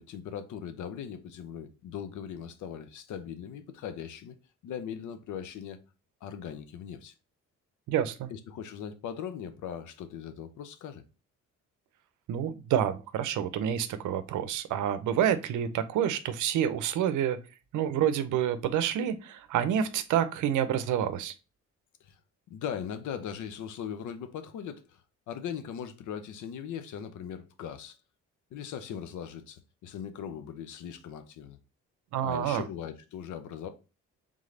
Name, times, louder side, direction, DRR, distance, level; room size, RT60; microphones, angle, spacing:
voice 1, 0.0-4.4 4.6-5.8 6.2-7.1 8.3-11.0 22.0-22.2 22.5-25.0 25.3-28.0 28.5-31.6 32.2-33.7, left 8 dB, 75° left, 0.6 m, -39 dB
voice 2, 7.9-8.3 12.3-17.4 17.7-21.3 32.1-32.6, right 9 dB, 80° right, 0.6 m, -28 dB
3.6 x 3.2 x 3.7 m
cardioid pair, 90°, 30 cm